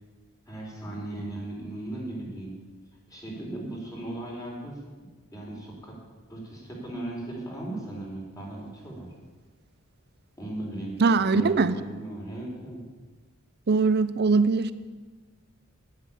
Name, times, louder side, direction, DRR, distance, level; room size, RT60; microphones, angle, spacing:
voice 1, 0.5-2.6 3.1-5.9 6.3-9.1 10.4-12.8, right 1 dB, 15° left, -3 dB, 4.0 m, -37 dB
voice 2, 11.0-11.7 13.7-14.7, right 4 dB, 50° right, 14 dB, 0.6 m, -21 dB
10.5 x 9.6 x 8.6 m, 1.3 s
head